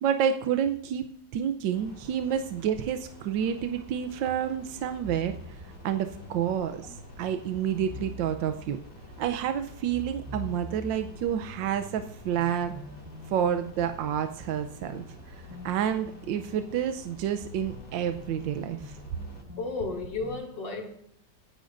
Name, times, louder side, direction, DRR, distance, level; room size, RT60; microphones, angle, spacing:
voice 1, 0.0-1.0 1.3-5.3 5.8-8.8 9.2-12.7 13.3-19.0, right 9 dB, 85° right, 1.4 m, -29 dB
sound 1, 1.7-19.4, equal, 25° left, 3.4 m, -50 dB
sound 2, 4.8-20.4, left 1 dB, 25° right, 7.1 m, -45 dB
voice 2, 19.6-20.9, left 3 dB, 75° left, 3.1 m, -33 dB
25.0 x 10.5 x 2.6 m
omnidirectional pair, 2.0 m